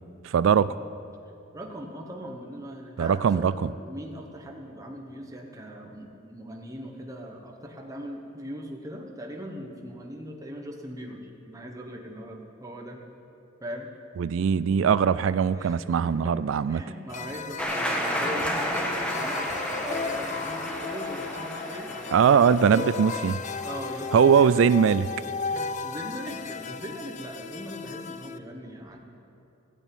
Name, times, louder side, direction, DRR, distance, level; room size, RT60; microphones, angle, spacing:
voice 1, 0.2-0.7 3.0-3.7 14.2-16.8 22.1-23.4 24.1-25.1, right 7 dB, 75° right, 16 dB, 0.3 m, -21 dB
voice 2, 1.5-13.0 13.6-13.9 15.5-16.4 16.7-22.1 22.6-22.9 23.2-24.8 25.4-29.0, equal, 15° right, 1 dB, 1.1 m, -40 dB
sound 1, 17.1-28.4, left 5 dB, 40° left, 0.5 m, -35 dB
sound 2, 17.6-24.2, equal, 5° left, 1.5 m, -32 dB
15.0 x 8.2 x 9.0 m, 2.8 s
head